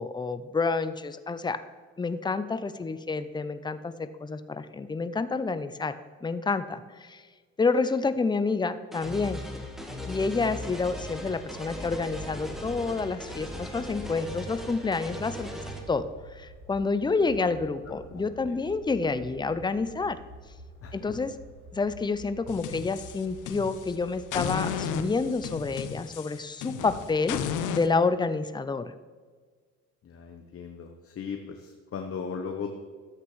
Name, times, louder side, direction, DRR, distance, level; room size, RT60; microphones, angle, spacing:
voice 1, 0.0-1.6 2.0-7.2 7.6-9.4 10.1-15.5 15.9-16.1 16.4-20.2 20.9-21.3 21.7-27.4 27.7-28.9, left 4 dB, 15° left, 12 dB, 0.5 m, -29 dB
sound 1, 8.9-15.8, left 1 dB, ahead, 1.5 m, -39 dB
sound 2, 9.1-25.9, right 1 dB, 40° right, 2.9 m, -49 dB
voice 2, 17.8-18.6 20.8-21.2 26.9-27.1 30.0-32.7, left 6 dB, 50° left, 4 dB, 0.9 m, -39 dB
sound 3, 22.5-23.9 24.3-27.9, left 8 dB, 85° left, 0.7 m, -34 dB
13.0 x 8.1 x 3.2 m, 1.5 s
cardioid pair, 90°, 30 cm